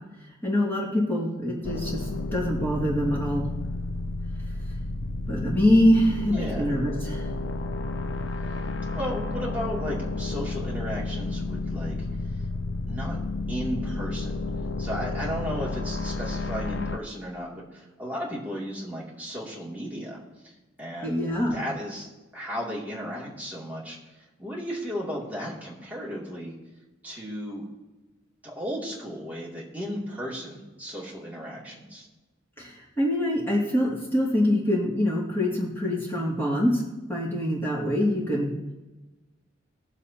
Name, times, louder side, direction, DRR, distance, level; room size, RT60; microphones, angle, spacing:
voice 1, 0.4-3.5 5.3-7.3 21.0-21.6 32.6-36.8 37.1-38.5, left 1 dB, 10° left, -5 dB, 2.4 m, -24 dB
sound 1, 1.6-17.0, left 2 dB, 75° left, 0.6 m, -31 dB
voice 2, 6.3-6.7 8.9-12.1 12.9-13.2 13.5-14.4 14.8-20.5 20.8-21.2 21.5-24.0 24.4-26.6 27.0-27.7 28.4-32.1, equal, 10° right, -5 dB, 2.6 m, -35 dB
21.5 x 7.2 x 2.9 m, 1.2 s
head